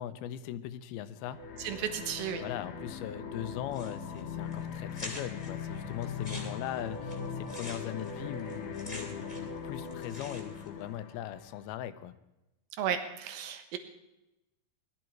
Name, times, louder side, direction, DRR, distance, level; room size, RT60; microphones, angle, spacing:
voice 1, 0.0-1.5 2.4-12.2, left 11 dB, 85° left, 13 dB, 2.7 m, -40 dB
sound 1, 1.2-11.7, left 6 dB, 60° left, 2.3 m, -40 dB
voice 2, 1.6-2.4 12.8-13.8, right 9 dB, 75° right, 8 dB, 3.1 m, -34 dB
sound 2, 3.7-4.2 4.5-4.6 4.9-5.5 6.0-9.6 9.8-10.7, left 1 dB, 10° left, 2.5 m, -45 dB
20.0 x 13.0 x 4.6 m, 0.96 s
omnidirectional pair, 4.4 m